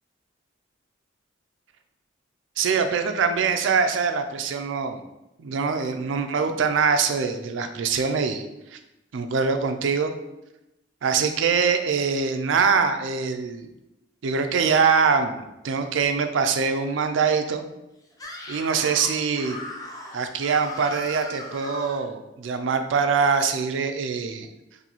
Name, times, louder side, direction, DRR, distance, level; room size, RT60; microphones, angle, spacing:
voice 1, 2.6-5.0 5.4-8.4 8.7-8.8 9.1-10.1 11.0-13.7 14.2-17.7 18.5-19.6 20.1-24.5, right 5 dB, 90° right, 7 dB, 0.4 m, -23 dB
Screaming, 18.1-22.1, left 1 dB, 20° left, 0.4 m, -38 dB
3.9 x 2.6 x 2.9 m, 0.92 s
head